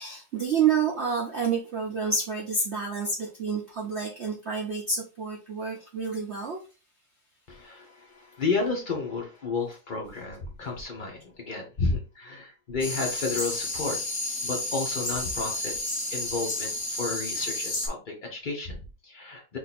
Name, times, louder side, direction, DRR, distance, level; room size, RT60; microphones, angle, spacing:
voice 1, 0.0-6.6, right 5 dB, 90° right, -2 dB, 0.6 m, -28 dB
voice 2, 7.5-14.0 14.4-15.8 16.1-19.6, left 4 dB, 85° left, 0 dB, 0.4 m, -32 dB
sound 1, 12.8-17.9, left 2 dB, 25° left, 1.2 m, -31 dB
3.6 x 2.6 x 4.1 m, 0.32 s
omnidirectional pair, 2.2 m